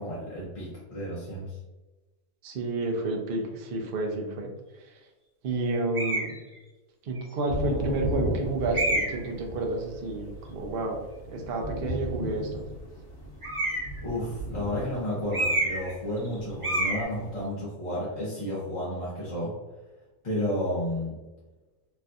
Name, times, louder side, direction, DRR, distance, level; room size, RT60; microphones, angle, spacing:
voice 1, 0.0-1.5 14.0-19.5 20.2-21.2, left 1 dB, 35° left, -7 dB, 0.5 m, -32 dB
voice 2, 2.4-4.5 5.4-6.4 7.1-11.0 11.3-12.6, right 3 dB, 70° right, 0 dB, 0.5 m, -30 dB
sound 1, 5.9-6.3 7.2-7.3 8.7-9.3 13.4-14.0 15.3-15.9 16.2-16.3 16.6-17.0, right 1 dB, 25° right, 0.8 m, -27 dB
Thunder / Rain, 7.5-17.5, left 1 dB, 65° left, 1.1 m, -35 dB
3.2 x 2.6 x 2.3 m, 1.1 s
omnidirectional pair, 1.6 m